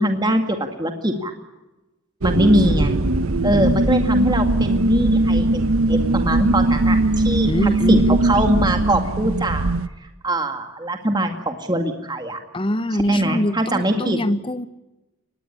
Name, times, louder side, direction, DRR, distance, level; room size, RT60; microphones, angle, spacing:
voice 1, 0.0-1.3 2.2-2.9 3.4-9.7 10.0-12.4 13.1-14.2, right 1 dB, 20° right, 5 dB, 2.0 m, -22 dB
sound 1, 2.2-9.9, right 2 dB, 80° right, 1.0 m, -19 dB
voice 2, 2.6-3.0 3.5-3.9 7.4-8.3 12.5-14.7, left 1 dB, 25° left, 14 dB, 0.9 m, -24 dB
24.0 x 20.0 x 9.7 m, 1.1 s
head